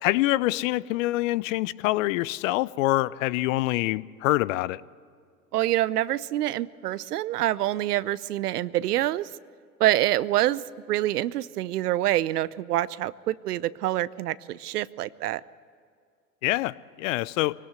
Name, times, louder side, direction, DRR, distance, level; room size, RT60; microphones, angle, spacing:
voice 1, 0.0-4.8 16.4-17.5, left 18 dB, 55° left, 20 dB, 0.7 m, -25 dB
voice 2, 5.5-9.3 9.8-10.6 10.9-15.4, right 14 dB, 70° right, 19 dB, 0.8 m, -26 dB
23.0 x 18.0 x 8.3 m, 2.2 s
hypercardioid pair, 90°, 48 cm